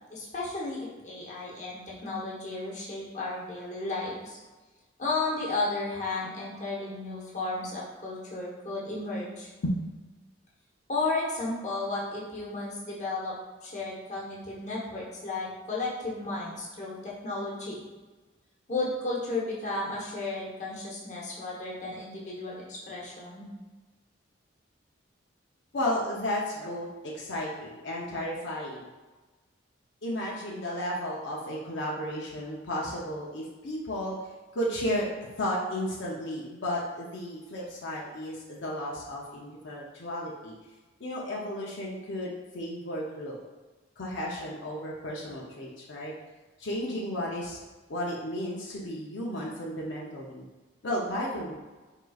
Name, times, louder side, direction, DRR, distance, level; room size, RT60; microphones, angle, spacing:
voice 1, 0.1-4.4 5.0-9.5 10.9-13.3 13.6-17.8 18.7-23.5, left 2 dB, 35° left, -5 dB, 1.0 m, -33 dB
voice 2, 25.7-26.9 27.1-28.9 30.0-34.2 34.5-35.1 35.4-40.5 41.0-43.4 44.0-46.1 46.6-47.6 47.9-50.4 50.8-51.5, left 1 dB, 70° left, -4 dB, 0.6 m, -33 dB
4.8 x 3.7 x 2.3 m, 1.2 s
head